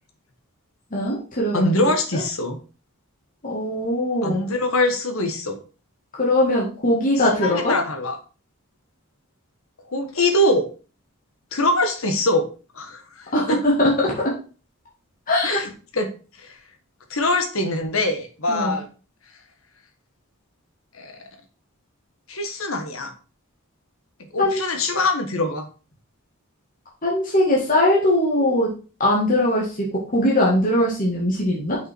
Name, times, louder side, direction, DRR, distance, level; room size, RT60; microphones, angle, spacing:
voice 1, 0.9-1.6 3.4-4.4 6.2-7.7 13.3-14.3 15.3-15.6 18.5-18.8 24.4-24.6 27.0-28.7 29.0-29.7 30.1-31.8, left 1 dB, 40° left, -4 dB, 1.8 m, -20 dB
voice 2, 1.5-2.6 4.2-5.6 7.2-8.2 9.9-10.6 11.5-12.5 12.7-13.6 15.4-16.1 16.4-16.6 17.1-18.9 20.9-21.1 22.3-23.1 24.3-25.7, left 1 dB, 70° left, 6 dB, 1.4 m, -23 dB
5.9 x 5.5 x 4.5 m, 0.36 s
head